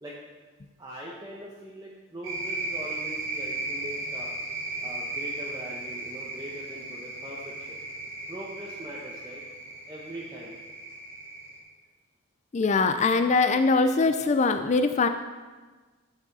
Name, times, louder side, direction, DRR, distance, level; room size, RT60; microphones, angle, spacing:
voice 1, 0.8-4.3 4.8-7.8 8.3-9.4 9.9-10.5, right 1 dB, 20° right, -6 dB, 1.0 m, -41 dB
sound 1, 2.2-11.6, right 2 dB, 70° right, 2.6 m, -36 dB
voice 2, 12.5-15.1, left 3 dB, 35° left, 8 dB, 0.3 m, -22 dB
12.0 x 4.9 x 4.1 m, 1.3 s
head